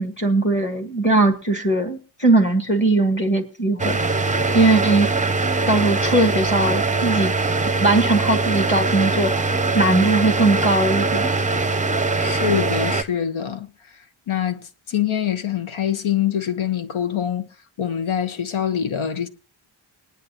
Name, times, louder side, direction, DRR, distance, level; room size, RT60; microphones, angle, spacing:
voice 1, 0.0-5.1 5.7-7.3 7.8-11.3, right 2 dB, 25° left, 1.6 m, -20 dB
sound 1, 3.8-13.0, right 3 dB, 15° right, 0.6 m, -22 dB
voice 2, 12.2-17.5 17.8-19.3, left 9 dB, 85° left, 1.1 m, -25 dB
21.0 x 10.5 x 2.8 m
wide cardioid pair, 80°, 47 cm